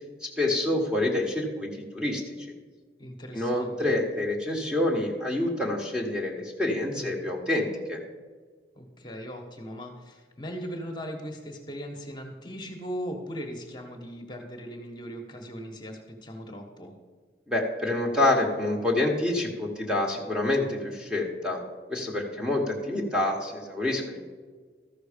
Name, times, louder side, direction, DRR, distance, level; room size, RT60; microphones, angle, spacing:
voice 1, 0.2-2.3 3.3-8.0 17.5-21.6 21.9-24.3, left 1 dB, 5° right, 0 dB, 1.3 m, -27 dB
voice 2, 3.0-3.9 6.9-7.2 8.7-16.9, equal, 25° left, 2 dB, 1.2 m, -39 dB
13.5 x 6.1 x 5.1 m, 1.5 s
head